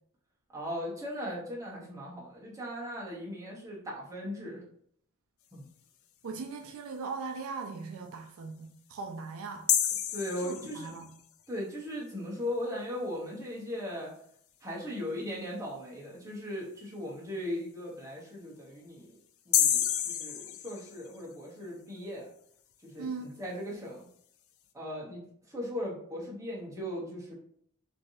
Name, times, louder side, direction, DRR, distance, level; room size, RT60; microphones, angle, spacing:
voice 1, 0.5-4.6 5.5-5.7 10.1-10.9 11.5-14.1 14.6-19.1 19.5-22.3 22.8-24.1 24.7-27.3, left 1 dB, 15° right, 0.8 m, -38 dB
voice 2, 6.2-9.7 10.4-11.1 23.0-23.4, right 4 dB, 65° right, 0.3 m, -39 dB
sound 1, 9.7-11.2 19.5-21.3, left 10 dB, 65° left, 0.3 m, -29 dB
3.2 x 2.5 x 2.6 m
head